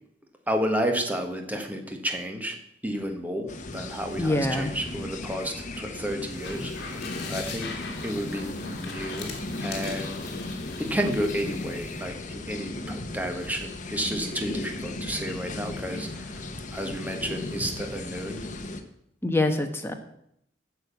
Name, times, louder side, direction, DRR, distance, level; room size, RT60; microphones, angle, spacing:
voice 1, 0.5-2.6 2.8-7.7 8.0-10.3 10.8-18.4, equal, 10° right, 4 dB, 1.4 m, -31 dB
sound 1, 3.5-18.8, left 2 dB, 40° left, 1.1 m, -36 dB
voice 2, 4.2-4.7 19.2-19.9, left 2 dB, 15° left, 4 dB, 1.2 m, -25 dB
sound 2, 6.2-12.0, left 4 dB, 60° left, 2.6 m, -41 dB
9.7 x 6.5 x 8.4 m, 0.74 s
head